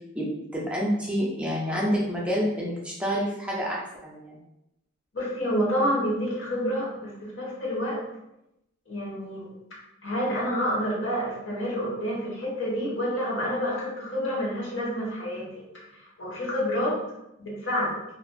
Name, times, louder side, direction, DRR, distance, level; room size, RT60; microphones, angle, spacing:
voice 1, 0.2-4.4, equal, 5° right, -4 dB, 0.4 m, -28 dB
voice 2, 5.1-8.0 8.9-9.5 10.0-15.6 15.9-16.9 17.4-18.0, equal, 70° left, -5 dB, 0.9 m, -28 dB
2.4 x 2.3 x 2.3 m, 0.87 s
head